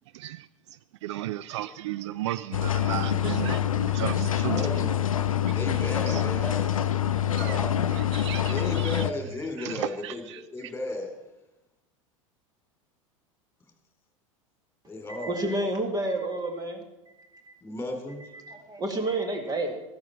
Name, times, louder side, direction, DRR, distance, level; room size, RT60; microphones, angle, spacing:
voice 1, 0.1-0.5 1.0-4.7 5.5-5.6 6.1-6.2 7.1-7.6 7.9-9.0 9.6-10.7, right 14 dB, 55° right, 16 dB, 0.4 m, -35 dB
sound 1, 2.5-9.1, left 10 dB, 80° left, 0.5 m, -26 dB
voice 2, 4.3-6.7 7.3-7.8 8.4-11.2 14.9-15.7 17.6-18.2, left 1 dB, 15° left, 3 dB, 3.1 m, -35 dB
voice 3, 15.1-16.8 18.5-19.8, right 1 dB, 20° right, 4 dB, 1.9 m, -29 dB
13.5 x 12.5 x 4.4 m, 1.0 s
figure-of-eight pair, 85°, 17 cm